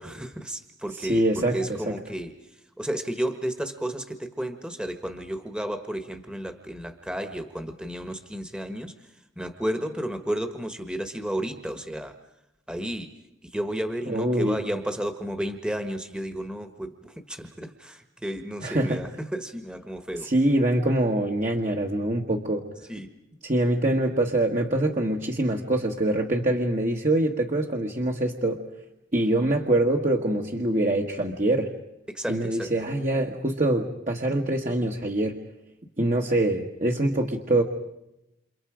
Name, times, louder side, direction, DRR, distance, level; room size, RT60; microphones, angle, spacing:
voice 1, 0.0-2.3 2.8-8.9 9.4-12.1 12.7-13.1 13.5-20.3 22.9-23.1 32.1-32.7, right 1 dB, 5° right, 7 dB, 1.4 m, -32 dB
voice 2, 1.0-2.0 14.1-14.6 18.6-19.0 20.2-22.6 23.4-28.6 29.1-31.7 32.3-35.4 36.0-37.6, right 1 dB, 40° right, 1 dB, 1.6 m, -24 dB
29.5 x 28.0 x 5.1 m, 0.86 s
head